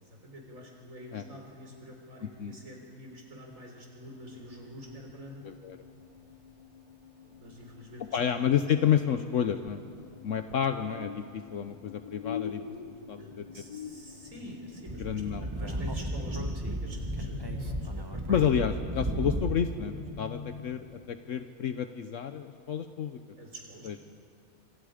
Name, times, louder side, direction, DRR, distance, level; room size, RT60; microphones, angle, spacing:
voice 1, 0.0-5.5 7.2-8.0 13.2-13.3 13.5-18.2 23.4-24.0, equal, 65° right, 0 dB, 4.3 m, -46 dB
voice 2, 2.2-2.6 5.4-5.8 8.1-9.9 10.2-13.6 15.0-15.6 16.4-16.5 18.3-23.2 23.8-24.0, left 8 dB, 65° left, 9 dB, 1.1 m, -30 dB
sound 1, 4.2-21.1, left 7 dB, 30° left, 1.0 m, -45 dB
Speech / Wind, 14.9-19.8, right 1 dB, 20° right, 1.2 m, -34 dB
26.5 x 26.0 x 5.1 m, 2.3 s
omnidirectional pair, 1.5 m